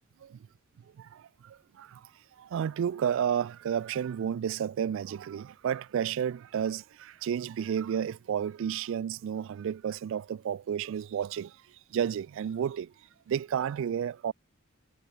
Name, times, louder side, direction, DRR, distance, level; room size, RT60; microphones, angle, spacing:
voice 1, 1.0-2.1 2.4-11.6 11.9-12.9 13.3-14.3, right 8 dB, 65° right, 0.3 m, -31 dB
head